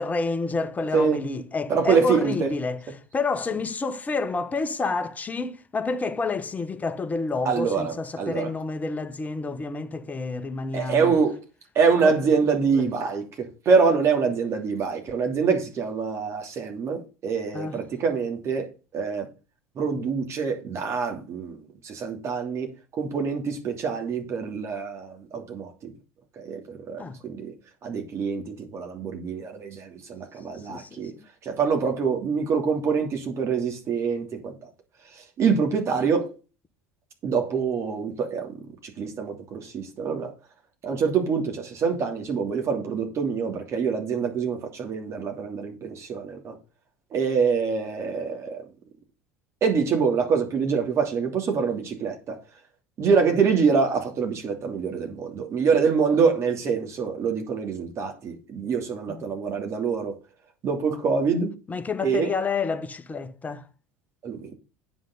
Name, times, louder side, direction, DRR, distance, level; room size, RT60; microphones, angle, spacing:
voice 1, 0.0-2.8 3.1-11.2 12.0-12.2 12.7-12.9 17.5-17.8 27.0-27.2 30.7-31.2 59.1-59.2 61.7-63.7, left 3 dB, 25° left, 1.3 m, -29 dB
voice 2, 1.7-2.5 7.4-8.5 10.7-11.4 11.7-19.3 19.7-25.9 26.4-27.5 27.8-31.1 31.4-34.7 35.1-36.3 37.2-38.6 38.8-40.3 40.8-46.6 47.1-48.6 49.6-52.4 53.0-60.2 60.6-61.5 62.0-62.3 64.2-64.5, right 5 dB, 45° right, 3.0 m, -25 dB
9.3 x 6.1 x 5.5 m
hypercardioid pair, 75°, 7 cm